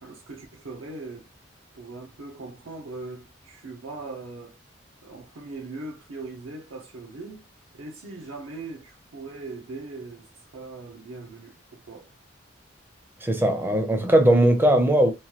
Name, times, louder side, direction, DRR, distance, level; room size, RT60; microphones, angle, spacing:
voice 1, 0.0-1.3 1.7-4.6 5.0-7.5 7.7-12.1, right 3 dB, 80° right, 0.6 m, -40 dB
voice 2, 13.2-15.1, right 1 dB, 10° right, 0.5 m, -19 dB
3.0 x 2.2 x 2.8 m
head